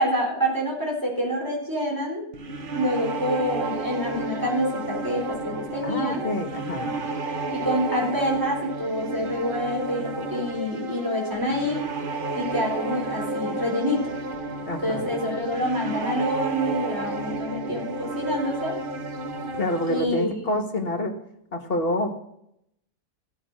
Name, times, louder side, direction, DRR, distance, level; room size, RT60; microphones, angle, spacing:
voice 1, 0.0-2.2 2.8-6.2 7.5-11.8 12.3-14.1 14.8-18.7 19.8-20.4, equal, 10° right, -3 dB, 3.9 m, -27 dB
sound 1, 2.3-20.0, right 2 dB, 40° right, 0.9 m, -31 dB
voice 2, 5.8-6.9 14.6-15.1 19.6-21.1 21.5-22.1, left 1 dB, 40° left, 4 dB, 1.6 m, -27 dB
15.5 x 5.7 x 6.2 m, 0.75 s
omnidirectional pair, 1.6 m